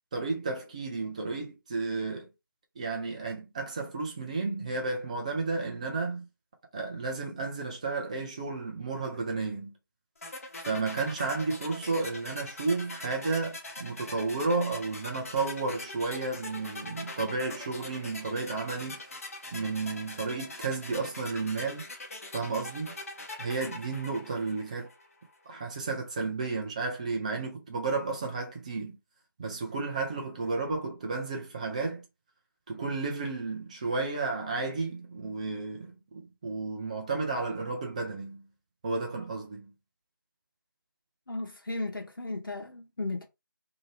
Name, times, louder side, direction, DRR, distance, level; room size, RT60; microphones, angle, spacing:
voice 1, 0.1-2.3 2.8-6.3 6.7-9.7 10.6-19.0 19.5-21.9 22.3-22.9 23.4-24.9 25.5-29.0 29.4-32.0 32.7-38.5 38.8-39.7, right 3 dB, 20° right, 0.7 m, -32 dB
sound 1, 10.2-25.1, left 2 dB, 40° left, 0.6 m, -43 dB
voice 2, 41.3-43.2, left 2 dB, 70° left, 0.8 m, -35 dB
2.9 x 2.5 x 3.2 m
figure-of-eight pair, 160°, 12 cm